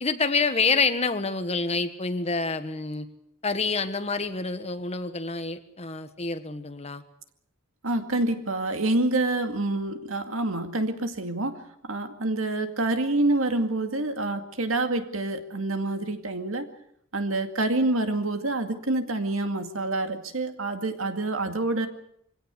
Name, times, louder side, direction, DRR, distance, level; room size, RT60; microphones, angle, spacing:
voice 1, 0.0-3.1 3.4-7.0, left 4 dB, 30° left, 9 dB, 1.5 m, -27 dB
voice 2, 7.8-16.7 17.1-21.9, right 2 dB, 75° right, 7 dB, 2.2 m, -27 dB
24.5 x 17.0 x 8.3 m, 0.72 s
head